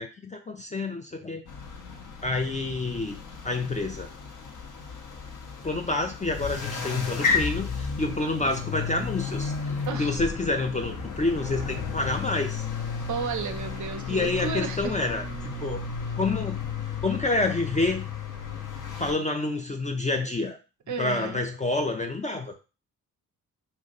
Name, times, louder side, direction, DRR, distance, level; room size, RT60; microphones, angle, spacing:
voice 1, 0.0-1.4 2.2-3.2 3.4-4.1 5.6-12.6 14.1-15.8 16.2-16.6 17.0-18.1 19.0-20.6 21.0-22.5, left 2 dB, 15° left, 5 dB, 0.4 m, -28 dB
sound 1, 1.5-19.1, left 5 dB, 45° left, 0.8 m, -33 dB
voice 2, 13.1-14.9 20.9-21.4, right 5 dB, 45° right, 7 dB, 0.6 m, -33 dB
2.5 x 2.2 x 3.8 m, 0.31 s
hypercardioid pair, 45°, 45 cm